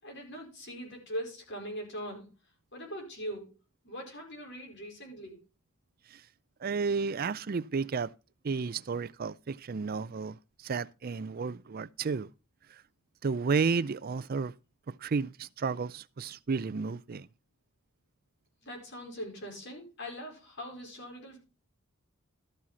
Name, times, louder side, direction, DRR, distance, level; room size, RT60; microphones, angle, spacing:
voice 1, 0.0-2.3 2.7-3.5 3.8-5.4 18.6-21.4, equal, 55° left, 4.9 m, -41 dB
voice 2, 6.6-8.1 8.4-10.4 10.6-12.3 13.2-14.5 14.9-17.3, right 5 dB, 45° right, 0.4 m, -32 dB
13.0 x 7.5 x 4.1 m
head